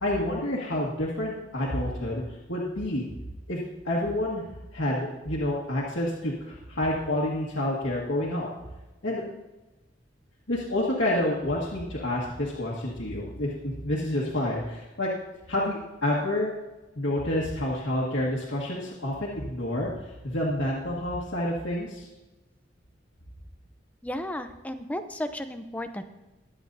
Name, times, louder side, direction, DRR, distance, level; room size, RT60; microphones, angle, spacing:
voice 1, 0.0-2.2 2.5-3.1 3.5-4.4 4.7-8.5 9.0-9.2 10.5-15.1 15.5-16.5 17.0-22.1, left 1 dB, 85° left, -5 dB, 1.8 m, -28 dB
voice 2, 24.0-26.0, left 1 dB, 10° left, 8 dB, 0.6 m, -34 dB
21.5 x 8.1 x 2.7 m, 1.1 s
head